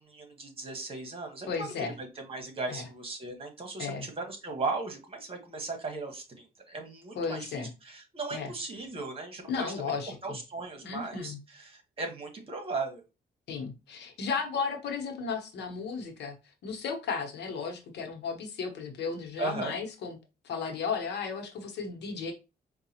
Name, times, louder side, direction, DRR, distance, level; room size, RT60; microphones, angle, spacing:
voice 1, 0.0-9.7 10.2-13.0 19.4-19.7, right 3 dB, 35° right, 4 dB, 1.3 m, -37 dB
voice 2, 1.5-1.9 2.7-2.8 3.8-4.1 7.1-7.7 8.3-8.5 9.5-10.2 10.8-11.4 13.5-16.3 16.6-20.2 20.4-22.3, left 5 dB, 80° left, 4 dB, 0.9 m, -34 dB
4.7 x 2.3 x 2.8 m, 0.28 s
cardioid pair, 95°, 17 cm